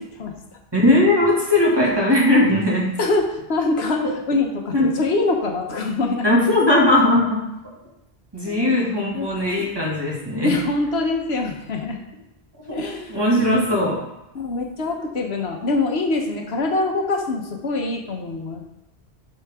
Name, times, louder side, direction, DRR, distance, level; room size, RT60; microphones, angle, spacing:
voice 1, 0.7-2.9 4.0-4.1 4.7-4.9 6.2-7.4 8.3-10.5 12.6-12.8 13.1-14.0, left 1 dB, 25° right, -5 dB, 2.0 m, -18 dB
voice 2, 3.0-6.3 8.5-8.7 9.1-9.3 9.6-9.7 10.4-12.0 12.7-13.2 14.3-18.6, left 2 dB, 80° left, 2 dB, 1.3 m, -24 dB
12.5 x 4.5 x 3.6 m, 0.92 s
omnidirectional pair, 1.1 m